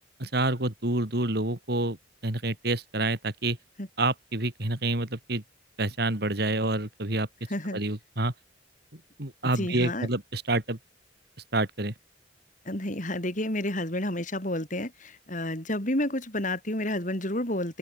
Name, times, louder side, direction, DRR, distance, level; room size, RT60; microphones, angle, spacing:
voice 1, 0.2-2.0 2.2-3.6 4.0-5.4 5.8-7.3 7.7-8.3 9.2-10.8 11.5-11.9, right 2 dB, 55° right, 3.2 m, -28 dB
voice 2, 9.6-10.1 12.7-17.8, left 1 dB, 40° left, 6.5 m, -30 dB
open air
head